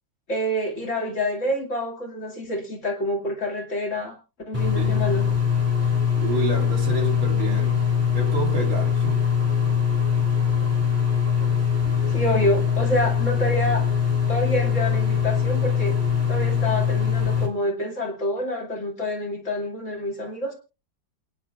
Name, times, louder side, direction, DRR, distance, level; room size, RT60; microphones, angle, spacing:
voice 1, 0.3-4.1 4.5-5.2 12.1-13.9 14.3-16.0 16.3-20.5, left 1 dB, 40° left, 1 dB, 2.7 m, -27 dB
sound 1, 4.5-17.5, left 7 dB, 5° right, 3.0 m, -22 dB
voice 2, 6.2-7.8 8.1-9.2, right 4 dB, 85° right, 1 dB, 4.3 m, -29 dB
28.0 x 10.0 x 2.4 m, 0.31 s
omnidirectional pair, 2.1 m